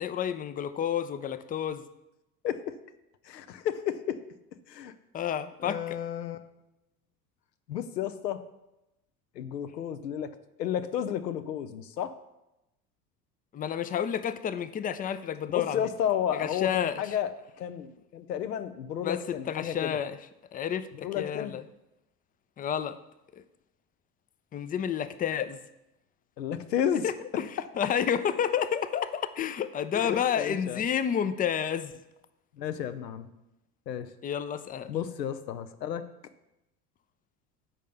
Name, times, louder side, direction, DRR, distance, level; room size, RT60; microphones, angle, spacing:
voice 1, 0.0-1.8 5.1-6.0 13.5-15.9 16.3-17.1 19.0-19.2 19.5-20.2 20.5-21.6 22.6-22.9 24.5-25.6 27.0-27.5 27.8-31.9 34.2-34.9, left 8 dB, 20° left, 12 dB, 0.4 m, -30 dB
voice 2, 3.2-4.2 4.7-4.9 5.6-6.4 7.7-8.4 9.4-10.3 10.6-12.1 15.5-17.3 17.6-20.0 20.9-21.5 26.4-27.0 29.9-30.8 32.6-33.3 33.9-34.1 34.9-36.0, left 9 dB, 85° left, 11 dB, 0.7 m, -32 dB
7.5 x 5.4 x 6.7 m, 0.91 s
figure-of-eight pair, 65°, 48 cm